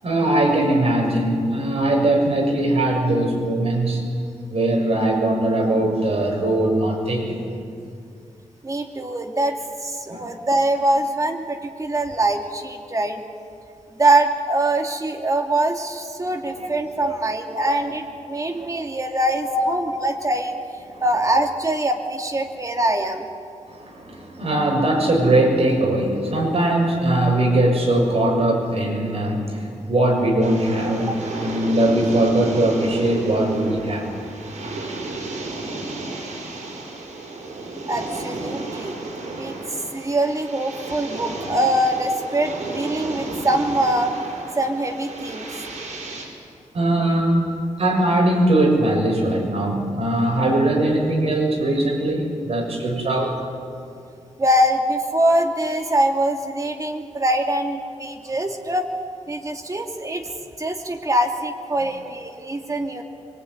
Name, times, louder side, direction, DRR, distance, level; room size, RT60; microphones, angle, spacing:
voice 1, 0.0-4.0 4.5-7.4 10.0-10.2 16.2-17.1 17.5-17.7 18.4-18.8 19.5-19.6 20.9-21.0 23.7-34.1 37.6-37.9 46.7-47.4 47.8-53.4, right 1 dB, 55° right, 0 dB, 7.0 m, -21 dB
voice 2, 8.6-13.2 14.0-20.5 21.0-23.3 37.9-39.0 39.4-39.5 39.9-44.1 44.6-45.5 54.4-58.9 59.3-60.3 60.6-63.0, right 1 dB, 25° right, 3 dB, 2.7 m, -23 dB
sound 1, 30.4-46.2, right 2 dB, 90° right, 6.1 m, -33 dB
24.5 x 23.5 x 9.7 m, 2.4 s
wide cardioid pair, 120°, 12 cm